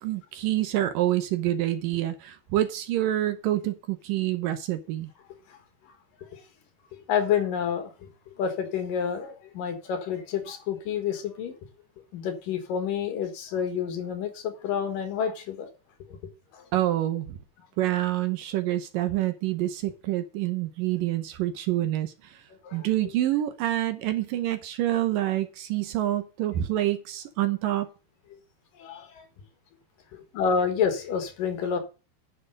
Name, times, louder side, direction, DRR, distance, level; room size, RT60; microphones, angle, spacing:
voice 1, 0.0-5.1 16.7-17.4 17.8-22.1 22.7-27.9, right 14 dB, 75° right, 2.3 m, -27 dB
voice 2, 7.1-11.6 12.1-15.7 16.1-16.2 16.5-16.7 22.6-22.9 24.9-25.0 28.3-28.4 28.8-29.3 30.3-31.8, left 7 dB, 65° left, 3.0 m, -29 dB
10.0 x 6.7 x 6.3 m
omnidirectional pair, 4.4 m